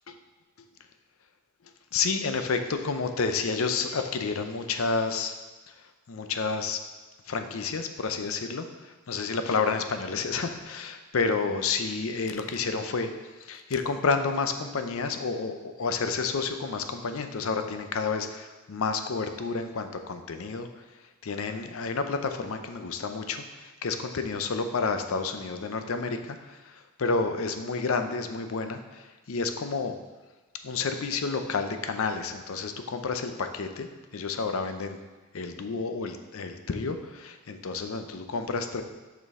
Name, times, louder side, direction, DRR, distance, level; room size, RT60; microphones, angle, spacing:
voice 1, 1.9-5.3 5.7-6.8 7.2-29.9 30.6-35.0 35.3-38.8, left 4 dB, 70° left, 7 dB, 0.6 m, -30 dB
6.5 x 5.2 x 3.6 m, 1.2 s
head